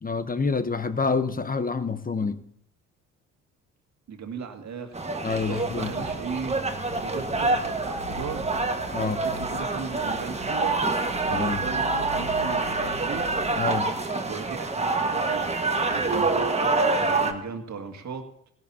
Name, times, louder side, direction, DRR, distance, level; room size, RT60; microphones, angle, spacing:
voice 1, 0.0-2.4 5.2-5.9 8.9-9.2 11.3-11.7 13.6-13.8, left 4 dB, 25° left, 12 dB, 1.0 m, -27 dB
voice 2, 4.1-5.0 5.5-6.6 7.0-8.5 9.0-10.8 11.3-13.3 14.3-15.5 15.9-18.3, right 6 dB, 50° right, 5 dB, 2.1 m, -37 dB
sound 1, 4.9-17.3, right 3 dB, 15° right, 1.6 m, -26 dB
sound 2, 5.3-13.5, left 3 dB, 70° left, 2.0 m, -43 dB
17.0 x 17.0 x 2.9 m, 0.71 s
hypercardioid pair, 50°, 37 cm